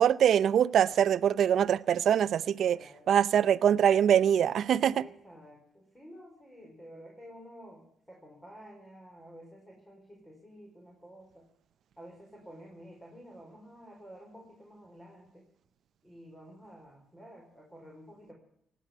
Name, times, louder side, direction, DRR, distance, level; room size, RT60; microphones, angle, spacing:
voice 1, 0.0-2.8 3.1-5.0, right 9 dB, 65° right, 0.6 m, -23 dB
voice 2, 2.7-3.2 4.9-11.5 12.0-15.4 16.0-18.3, equal, 10° left, 4.9 m, -51 dB
18.5 x 8.3 x 9.3 m
cardioid pair, 90°, 0 cm